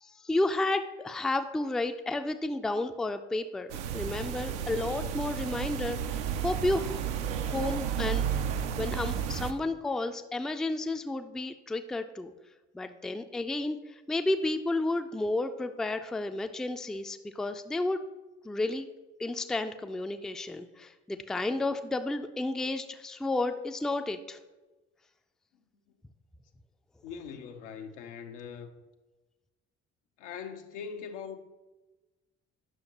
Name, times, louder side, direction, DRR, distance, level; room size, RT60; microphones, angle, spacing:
voice 1, 0.2-6.0 6.4-7.0 7.5-8.3 8.8-12.3 12.7-13.8 14.1-18.0 18.4-18.9 19.2-24.4, left 2 dB, ahead, 0.4 m, -31 dB
sound 1, 3.7-9.5, right 8 dB, 75° right, 0.5 m, -32 dB
voice 2, 27.0-28.7 30.2-31.4, left 6 dB, 75° left, 0.6 m, -41 dB
9.0 x 6.2 x 2.9 m
figure-of-eight pair, 45°, 35 cm